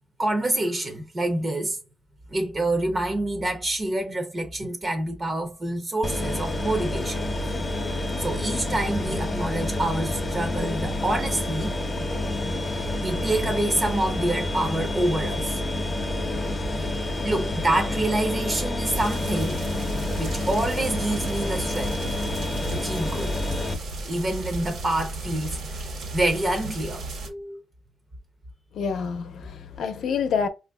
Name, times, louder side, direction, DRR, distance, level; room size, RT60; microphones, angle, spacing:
voice 1, 0.2-1.8 2.3-7.2 8.2-11.8 12.6-15.6 16.7-17.0 17.2-19.6 20.2-22.0 22.7-23.4 24.0-25.8 26.1-27.6, right 1 dB, 25° right, 0.6 m, -27 dB
sound 1, 6.0-23.7, left 1 dB, 25° left, 0.6 m, -28 dB
sound 2, 18.9-27.3, right 2 dB, 75° right, 1.3 m, -35 dB
voice 2, 28.7-30.5, left 6 dB, 65° left, 0.6 m, -27 dB
5.0 x 2.5 x 2.2 m
wide cardioid pair, 155°, 0 cm